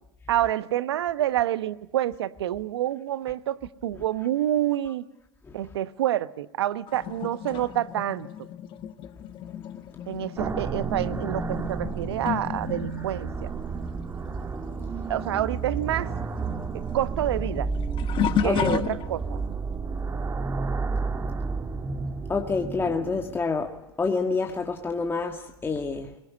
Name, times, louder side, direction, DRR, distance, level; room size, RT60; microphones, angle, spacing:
voice 1, 0.3-5.0 5.5-8.3 10.1-13.5 15.1-16.1 16.9-17.7 18.4-19.4, right 12 dB, 75° right, 1.0 m, -28 dB
sound 1, 6.9-14.9 15.1-19.5 20.1-20.4 22.6-22.7 23.6-23.7, left 9 dB, 40° left, 1.3 m, -34 dB
sound 2, 10.4-23.4, right 4 dB, 20° right, 1.5 m, -31 dB
voice 2, 18.2-18.8 22.3-26.1, left 4 dB, 15° left, 1.9 m, -28 dB
22.0 x 20.5 x 9.6 m
hypercardioid pair, 100°, 14 cm